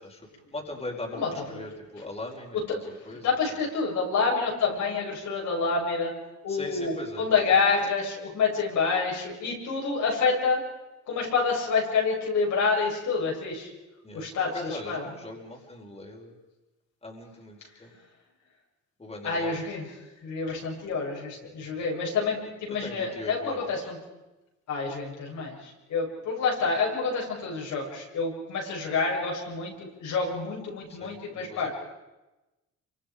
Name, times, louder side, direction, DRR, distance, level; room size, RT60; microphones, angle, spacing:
voice 1, 0.0-3.3 6.5-7.5 14.0-16.4 17.0-18.0 19.0-19.6 22.7-23.9 30.9-31.7, left 2 dB, 20° left, 0 dB, 4.8 m, -40 dB
voice 2, 1.2-1.6 2.7-2.8 3.2-6.1 6.4-6.9 7.2-10.6 11.1-13.7 14.1-15.0 19.2-19.9 20.2-24.0 24.7-31.7, left 4 dB, 75° left, -2 dB, 7.2 m, -28 dB
27.0 x 25.0 x 5.2 m, 1.0 s
cardioid pair, 90°, 30 cm